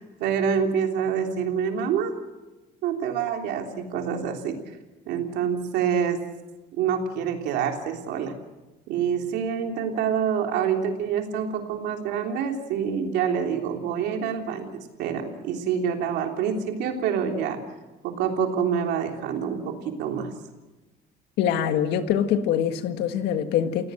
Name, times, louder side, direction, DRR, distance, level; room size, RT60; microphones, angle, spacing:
voice 1, 0.0-2.1 2.8-4.6 5.1-6.2 6.7-8.3 8.9-17.6 18.0-20.3, right 7 dB, 90° right, 3 dB, 3.4 m, -26 dB
voice 2, 21.4-23.9, left 9 dB, 90° left, 8 dB, 1.7 m, -24 dB
29.0 x 17.5 x 7.8 m, 1.1 s
cardioid pair, 110°, 17 cm